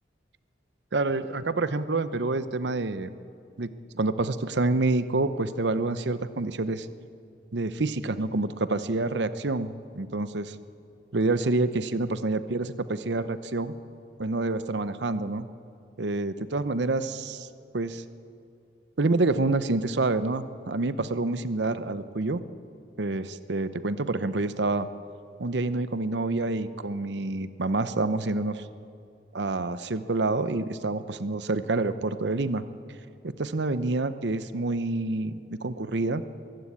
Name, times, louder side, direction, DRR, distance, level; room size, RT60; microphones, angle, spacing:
voice 1, 0.9-3.1 3.6-6.9 7.5-10.6 11.1-13.7 14.2-15.5 16.0-17.5 17.7-18.0 19.0-22.4 23.0-24.9 25.4-28.6 29.3-32.6 33.2-36.2, right 2 dB, 70° right, 13 dB, 0.8 m, -27 dB
22.5 x 15.5 x 8.6 m, 2.5 s
head